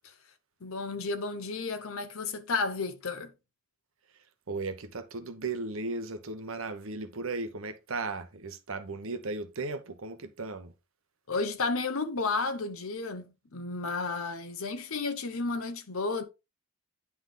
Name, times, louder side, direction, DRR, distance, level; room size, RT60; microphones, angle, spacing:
voice 1, 0.6-3.3 11.3-16.2, left 3 dB, 75° left, 0.9 m, -32 dB
voice 2, 4.5-10.7, right 3 dB, 70° right, 0.9 m, -36 dB
9.6 x 3.5 x 3.8 m
head